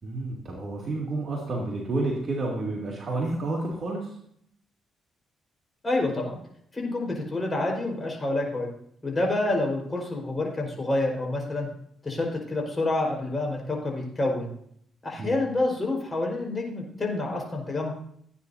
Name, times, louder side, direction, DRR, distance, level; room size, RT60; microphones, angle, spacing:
voice 1, 0.0-4.1 15.2-15.4, right 2 dB, 40° right, -4 dB, 2.9 m, -30 dB
voice 2, 5.8-6.4 6.7-8.7 9.0-11.7 12.0-14.5 15.0-17.9, left 2 dB, 25° left, 0 dB, 4.8 m, -28 dB
16.5 x 9.3 x 2.8 m, 0.67 s
cardioid pair, 90°, 0 cm